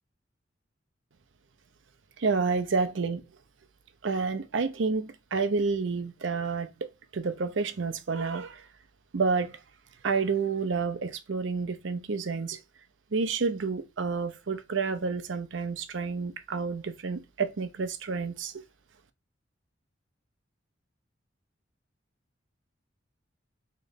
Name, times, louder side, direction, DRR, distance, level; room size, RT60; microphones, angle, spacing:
voice 1, 2.2-3.2 4.0-6.7 7.1-8.7 9.1-9.6 10.0-12.6 13.1-18.5, right 4 dB, 85° right, 0.6 m, -29 dB
3.2 x 3.1 x 3.9 m
head